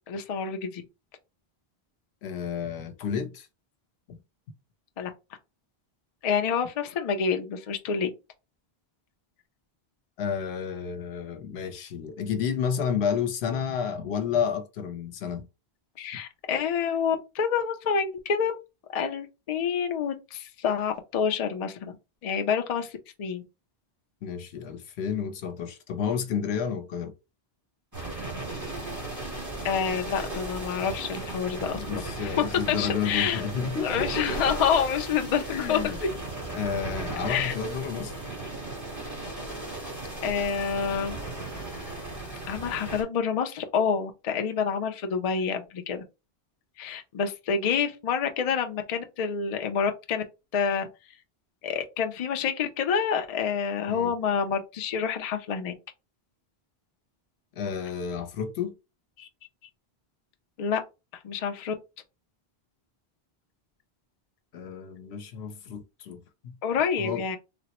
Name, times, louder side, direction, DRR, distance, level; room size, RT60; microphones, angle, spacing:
voice 1, 0.1-0.8 5.0-5.1 6.2-8.1 16.0-18.5 18.9-21.9 22.2-22.9 23.2-23.4 29.6-33.4 33.8-35.9 37.3-37.5 40.2-41.2 42.4-46.0 46.8-50.2 50.5-50.8 51.6-55.7 59.2-59.3 60.6-60.8 61.2-61.7 66.6-67.4, left 7 dB, 55° left, 0.4 m, -28 dB
voice 2, 2.2-3.5 4.1-4.2 10.2-15.5 24.2-27.1 31.8-34.1 35.5-36.0 36.5-38.2 53.9-54.1 57.6-58.8 64.5-66.6 67.0-67.2, left 7 dB, 85° left, 0.9 m, -31 dB
sound 1, 27.9-43.0, right 2 dB, 15° right, 1.1 m, -36 dB
3.4 x 2.0 x 2.8 m
omnidirectional pair, 1.1 m